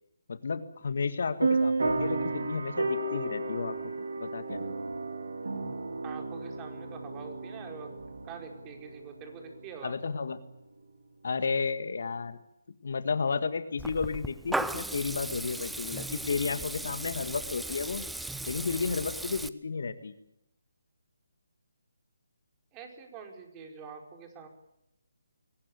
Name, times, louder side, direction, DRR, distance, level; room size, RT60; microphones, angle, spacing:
voice 1, 0.3-3.8 4.2-4.6 9.8-10.4 11.2-12.4 12.8-18.0 18.4-20.1, left 5 dB, 60° left, 12 dB, 1.7 m, -32 dB
sound 1, 1.4-9.5, right 3 dB, 70° right, 4.2 m, -32 dB
voice 2, 6.0-7.9 8.2-9.9 22.7-24.5, right 6 dB, 20° right, 4 dB, 4.9 m, -45 dB
Water tap faucet / Liquid, 13.8-19.5, right 1 dB, ahead, 0.8 m, -37 dB
23.0 x 19.0 x 8.3 m, 0.81 s
figure-of-eight pair, 150°, 0 cm